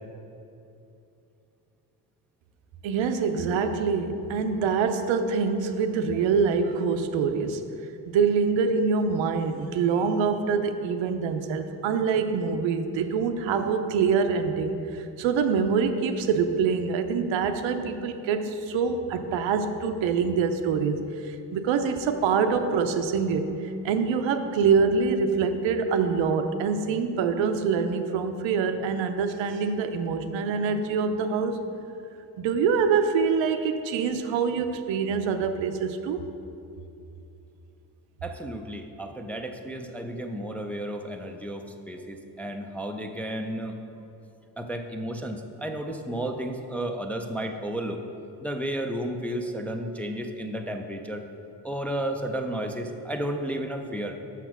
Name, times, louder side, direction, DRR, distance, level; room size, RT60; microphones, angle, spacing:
voice 1, 2.8-7.6 8.1-31.6 32.4-36.2, right 5 dB, 85° right, 7 dB, 0.7 m, -25 dB
voice 2, 38.2-43.8 44.6-48.0 48.4-51.2 51.6-54.2, right 1 dB, 5° left, 3 dB, 0.4 m, -32 dB
6.0 x 5.9 x 6.0 m, 2.8 s
cardioid pair, 95°, 44 cm